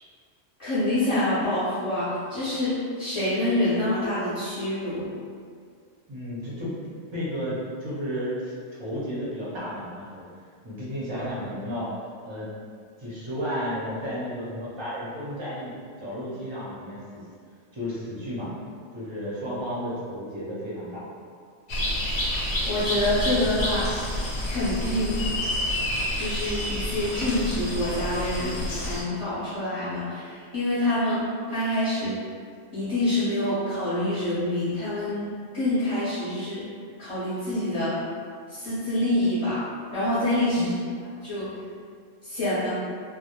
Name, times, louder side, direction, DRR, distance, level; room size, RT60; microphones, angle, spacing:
voice 1, 0.6-5.1 22.7-23.9 24.4-25.2 26.1-31.2 31.5-32.2 32.7-36.6 37.0-38.0 38.5-39.6 39.9-40.7 41.2-41.5 42.2-42.7, left 1 dB, 35° left, -13 dB, 0.6 m, -26 dB
voice 2, 6.1-6.8 7.1-8.5 8.8-10.2 10.6-12.0 12.2-12.5 13.0-17.2 17.7-18.5 18.9-21.1 40.5-40.8, equal, 35° right, -8 dB, 0.4 m, -33 dB
sound 1, 21.7-29.0, left 1 dB, 70° left, 0.8 m, -29 dB
2.1 x 2.1 x 2.8 m, 2.1 s
omnidirectional pair, 1.2 m